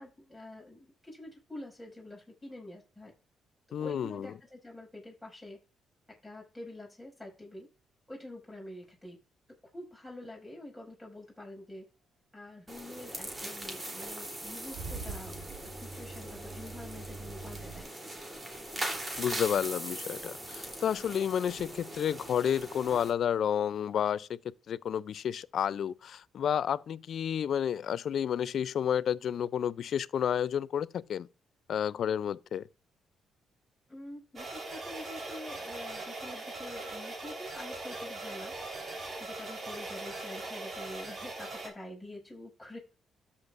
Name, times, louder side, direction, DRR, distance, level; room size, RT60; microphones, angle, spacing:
voice 1, 0.0-3.1 3.8-5.6 6.2-7.7 8.1-9.2 9.7-11.8 12.3-15.6 15.9-17.9 33.9-38.5 39.2-42.8, left 1 dB, ahead, 5.5 m, -46 dB
voice 2, 3.7-4.3 19.2-24.4 24.7-31.3 31.7-32.6, left 9 dB, 65° left, 0.4 m, -31 dB
sound 1, 12.7-23.1, right 1 dB, 25° right, 3.2 m, -41 dB
Car / Engine starting / Idling, 14.3-17.8, right 4 dB, 70° right, 1.9 m, -44 dB
sound 2, 34.4-41.7, right 2 dB, 40° right, 3.6 m, -40 dB
13.0 x 7.0 x 2.5 m
cardioid pair, 90°, 0 cm